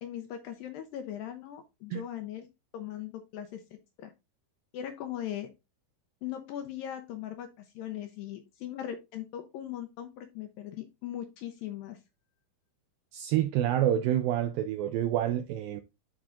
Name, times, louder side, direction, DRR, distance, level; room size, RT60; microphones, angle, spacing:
voice 1, 0.0-2.5 2.7-4.1 4.7-5.5 6.2-12.0, left 11 dB, 80° left, 2.1 m, -39 dB
voice 2, 13.1-15.8, right 11 dB, 85° right, 2.1 m, -28 dB
11.0 x 4.3 x 2.4 m
omnidirectional pair, 4.7 m